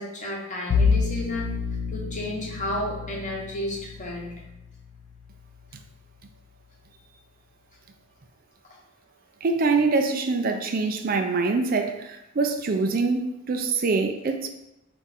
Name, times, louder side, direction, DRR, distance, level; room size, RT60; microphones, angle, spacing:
voice 1, 0.0-1.5 1.9-4.3, left 1 dB, 40° left, -2 dB, 1.0 m, -32 dB
Bowed string instrument, 0.7-5.8, left 5 dB, 75° left, 0.4 m, -29 dB
voice 2, 9.4-14.5, right 4 dB, 45° right, 5 dB, 0.4 m, -24 dB
4.7 x 2.6 x 4.0 m, 0.92 s
head